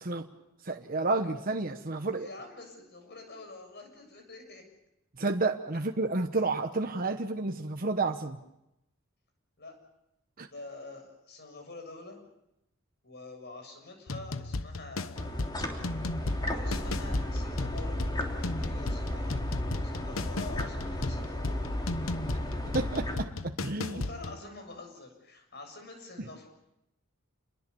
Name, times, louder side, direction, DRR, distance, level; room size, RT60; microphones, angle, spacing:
voice 1, 0.7-2.3 5.2-8.4 10.4-10.5 22.7-24.0, right 3 dB, 45° right, 5 dB, 1.2 m, -30 dB
voice 2, 2.0-4.6 9.6-9.8 10.4-12.2 13.0-15.6 16.5-19.4 19.8-21.7 23.8-26.5, left 2 dB, 55° left, 4 dB, 7.3 m, -47 dB
sound 1, 14.1-24.4, left 2 dB, 85° left, 1.0 m, -36 dB
sound 2, 15.2-23.2, left 1 dB, 20° left, 3.3 m, -34 dB
28.5 x 22.0 x 7.1 m, 0.87 s
head